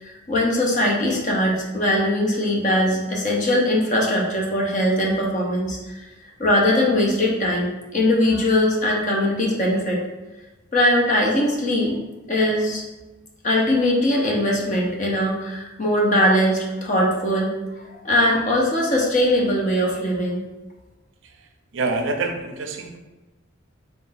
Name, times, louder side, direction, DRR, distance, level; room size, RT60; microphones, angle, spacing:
voice 1, 0.0-6.1 6.4-10.0 10.7-12.0 12.3-12.8 13.4-17.5 18.0-20.4, left 1 dB, 40° left, -2 dB, 0.7 m, -21 dB
voice 2, 21.7-23.0, right 3 dB, 60° right, 5 dB, 0.4 m, -26 dB
3.6 x 2.5 x 3.9 m, 1.1 s
head